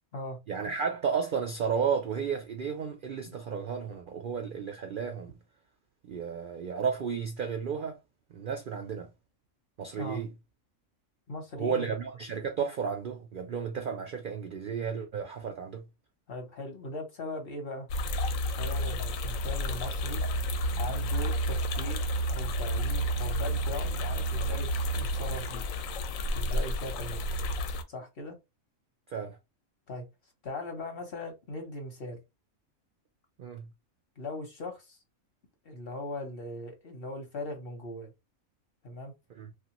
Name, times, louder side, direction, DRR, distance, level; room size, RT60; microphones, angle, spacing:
voice 1, 0.5-5.3 6.1-8.0 8.3-9.1 9.8-10.3 11.6-15.8 29.1-29.4 33.4-33.7 39.3-39.5, right 6 dB, 70° right, 0.5 m, -33 dB
voice 2, 11.3-12.0 16.3-17.9 18.6-20.2 20.7-22.0 22.3-25.6 26.3-27.2 27.9-28.4 29.9-30.1 30.4-32.2 34.2-35.0 35.6-38.1 38.8-39.1, left 2 dB, 50° left, 0.9 m, -39 dB
sound 1, 17.9-27.8, equal, 75° left, 0.9 m, -30 dB
3.0 x 2.4 x 2.9 m
omnidirectional pair, 1.5 m